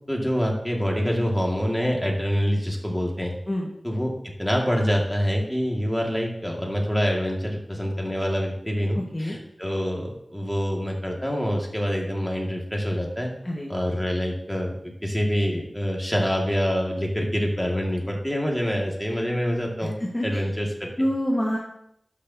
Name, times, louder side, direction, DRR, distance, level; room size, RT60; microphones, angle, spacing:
voice 1, 0.1-3.3 3.8-4.1 4.4-13.3 13.7-20.0 20.2-21.1, equal, 5° left, -1 dB, 1.9 m, -26 dB
voice 2, 8.9-9.4 13.4-13.7 20.1-20.4 21.0-21.6, equal, 25° left, -4 dB, 1.5 m, -26 dB
11.5 x 6.7 x 2.7 m, 0.74 s
wide cardioid pair, 75°, 0 cm